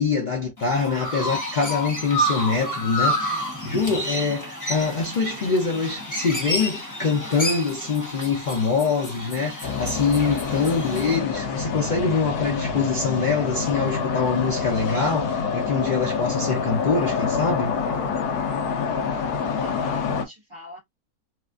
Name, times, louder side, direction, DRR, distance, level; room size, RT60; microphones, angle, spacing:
voice 1, 0.0-17.7, left 4 dB, 65° left, 0.4 m, -24 dB
Chirp tweet, 0.6-11.2, equal, 15° left, 0.7 m, -30 dB
sound 1, 9.6-20.2, left 5 dB, 85° left, 1.2 m, -27 dB
voice 2, 19.5-20.8, left 1 dB, 20° right, 1.1 m, -43 dB
3.1 x 2.4 x 2.3 m
omnidirectional pair, 1.7 m